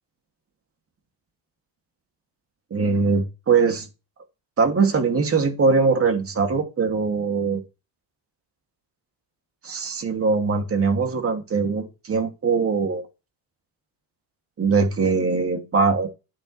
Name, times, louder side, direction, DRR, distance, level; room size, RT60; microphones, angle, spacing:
voice 1, 2.7-3.9 4.6-7.6 9.6-13.0 14.6-16.1, right 4 dB, 30° right, 2.6 m, -21 dB
12.0 x 8.8 x 3.4 m
cardioid pair, 145°, 47 cm